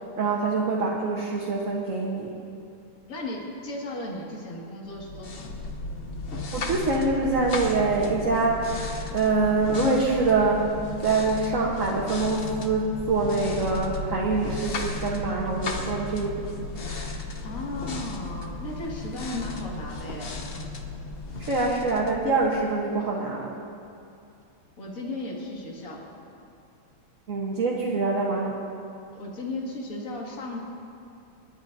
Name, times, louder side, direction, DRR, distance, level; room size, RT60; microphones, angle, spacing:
voice 1, 0.2-2.3 6.5-8.7 9.1-10.6 11.0-16.4 21.5-23.5 27.3-28.5, right 3 dB, 45° right, -3 dB, 1.3 m, -25 dB
voice 2, 3.1-5.5 17.4-20.3 24.8-26.1 29.2-30.6, left 2 dB, 40° left, -2 dB, 2.3 m, -35 dB
sound 1, 4.9-22.8, left 3 dB, 80° left, 0.5 m, -35 dB
29.5 x 11.0 x 2.7 m, 2.5 s
omnidirectional pair, 2.4 m